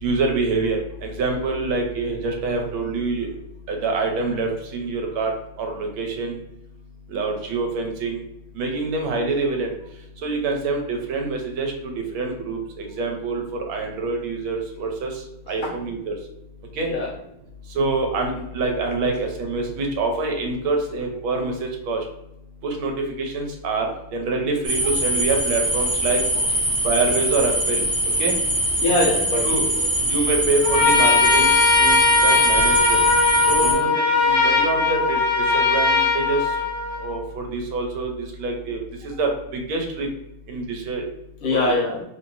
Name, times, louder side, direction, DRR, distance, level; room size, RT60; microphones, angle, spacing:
voice 1, 0.0-3.3 3.7-5.3 5.6-6.4 7.1-8.2 8.6-9.7 10.2-13.4 13.7-15.1 15.5-16.1 16.8-16.9 17.7-22.0 22.6-22.9 23.2-26.2 26.8-27.8 28.2-28.3 29.4-29.6 30.1-31.5 31.8-33.0 33.5-35.2 35.5-36.4 37.0-38.1 38.4-40.1 40.5-41.0 41.5-41.6, right 3 dB, 80° right, 2 dB, 1.6 m, -25 dB
sound 1, 24.6-33.7, right 1 dB, 15° right, 0.8 m, -23 dB
voice 2, 28.8-29.5 33.6-33.9 41.4-42.0, left 2 dB, 80° left, -5 dB, 2.0 m, -23 dB
Trumpet, 30.6-37.2, left 4 dB, 65° left, 1.4 m, -19 dB
4.4 x 2.8 x 2.5 m, 0.84 s
omnidirectional pair, 2.3 m